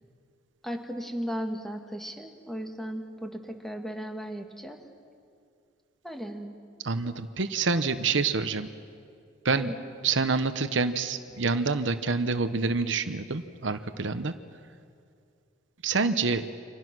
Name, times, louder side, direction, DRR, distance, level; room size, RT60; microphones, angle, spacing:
voice 1, 0.6-4.8 6.0-6.6 9.6-9.8, equal, ahead, 3 dB, 2.1 m, -36 dB
voice 2, 6.8-8.7 9.4-9.7 10.0-14.3 15.8-16.5, right 4 dB, 70° right, 10 dB, 1.0 m, -27 dB
29.5 x 26.0 x 6.3 m, 2.3 s
head